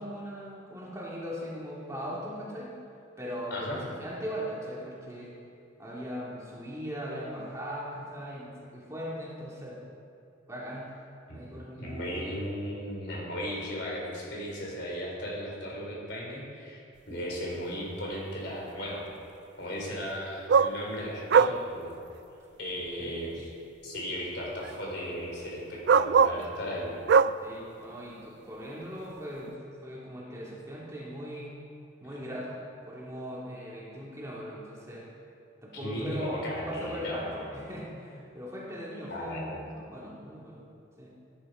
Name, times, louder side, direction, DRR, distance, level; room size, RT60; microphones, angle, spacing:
voice 1, 0.0-2.7 3.2-5.3 5.8-9.8 10.5-10.9 11.3-12.2 14.3-14.4 23.0-23.2 27.4-29.6 29.8-31.5 32.0-32.6 32.9-35.1 35.6-40.6 41.0-41.1, equal, 15° right, -5 dB, 2.3 m, -39 dB
voice 2, 11.8-19.1 19.6-22.0 22.6-23.5 23.8-26.9 35.7-37.6 39.1-39.6, equal, 60° left, -3 dB, 4.0 m, -36 dB
sound 1, 17.7-17.8 20.5-20.8 21.3-21.6 22.8-22.9 24.6-24.8 25.9-26.4 27.1-27.3 29.5-29.6, right 6 dB, 60° right, 0.3 m, -21 dB
17.5 x 10.5 x 4.9 m, 2.5 s
head